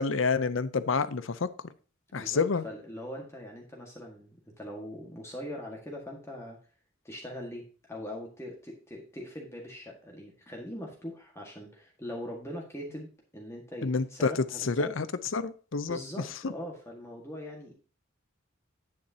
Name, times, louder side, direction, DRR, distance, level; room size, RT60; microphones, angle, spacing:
voice 1, 0.0-1.5 2.1-2.6 13.8-15.1 15.3-16.0, left 4 dB, 65° left, 15 dB, 0.6 m, -28 dB
voice 2, 2.1-6.6 7.0-15.0 15.9-17.7, equal, 15° left, -1 dB, 1.6 m, -41 dB
9.3 x 8.6 x 2.8 m, 0.38 s
head